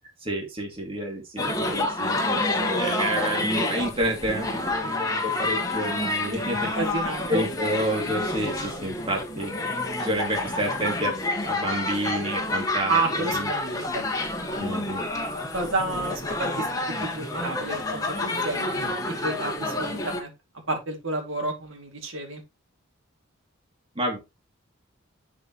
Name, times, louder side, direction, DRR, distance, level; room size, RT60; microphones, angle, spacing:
voice 1, 0.2-6.7 7.3-13.5 14.5-15.0 24.0-24.2, right 1 dB, 25° right, 2.4 m, -29 dB
sound 1, 1.4-20.2, left 2 dB, 15° left, 1.4 m, -29 dB
voice 2, 6.6-7.4 12.9-14.0 15.5-20.3 20.7-22.4, right 3 dB, 70° right, 2.3 m, -30 dB
11.0 x 5.0 x 3.0 m
head